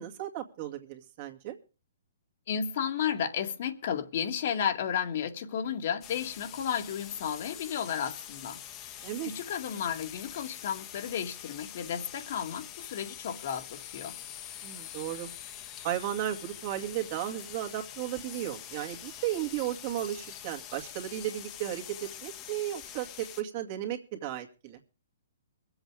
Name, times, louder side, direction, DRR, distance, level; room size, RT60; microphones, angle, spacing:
voice 1, 0.0-1.6 9.0-9.3 14.6-15.3 15.8-24.8, right 12 dB, 40° right, 2.3 m, -35 dB
voice 2, 2.5-8.6 8.9-14.2, left 8 dB, 55° left, 2.0 m, -33 dB
sound 1, 6.0-23.4, left 10 dB, 25° left, 1.3 m, -45 dB
22.5 x 8.0 x 4.9 m
hypercardioid pair, 150°, 0 cm